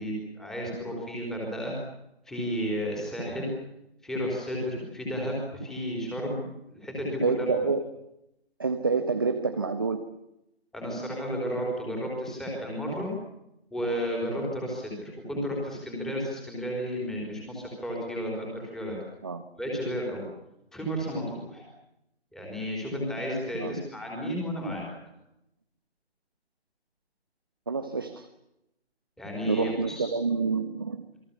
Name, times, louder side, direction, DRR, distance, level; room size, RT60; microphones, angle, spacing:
voice 1, 0.0-1.8 2.3-3.5 4.0-7.6 10.7-13.1 13.7-19.0 19.6-20.3 20.7-21.6 22.3-24.8 29.2-30.1, equal, ahead, -2 dB, 4.1 m, -32 dB
voice 2, 7.2-7.8 8.6-10.1 19.2-19.4 23.5-23.8 27.7-28.3 29.4-31.1, right 4 dB, 20° right, 6 dB, 1.0 m, -28 dB
28.5 x 22.5 x 7.2 m, 0.84 s
figure-of-eight pair, 165°, 33 cm